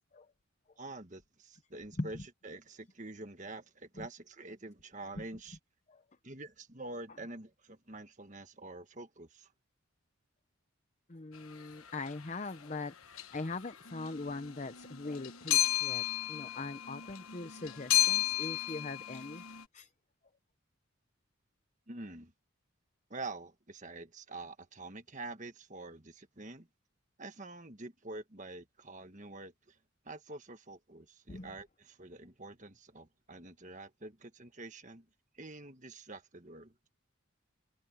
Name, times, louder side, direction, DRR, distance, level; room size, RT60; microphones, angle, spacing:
voice 1, 0.8-2.2 2.4-5.6 6.2-9.5 21.9-22.3 23.1-26.7 27.2-29.8 30.0-35.0 35.3-36.7, right 2 dB, 35° right, 1.5 m, -46 dB
voice 2, 11.1-19.9 31.3-31.5, left 3 dB, 35° left, 0.7 m, -41 dB
sound 1, 11.9-12.1 13.1-13.6 13.9-19.6, left 14 dB, 80° left, 1.2 m, -33 dB
head